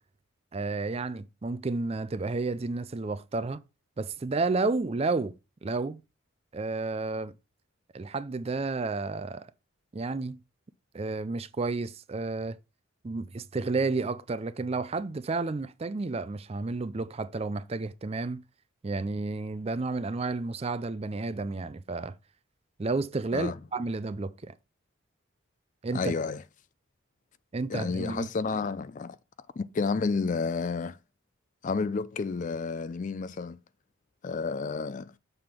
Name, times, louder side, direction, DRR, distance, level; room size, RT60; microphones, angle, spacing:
voice 1, 0.5-3.6 4.0-5.3 5.6-6.0 6.5-7.3 7.9-9.5 9.9-10.4 10.9-12.6 13.0-18.4 18.8-22.1 22.8-24.5 25.8-26.1 27.5-28.3, right 3 dB, 30° right, 0.4 m, -31 dB
voice 2, 25.9-26.4 27.7-29.2 29.6-31.0 31.6-33.6 34.2-35.1, left 4 dB, 40° left, 0.3 m, -30 dB
6.8 x 3.7 x 6.0 m
head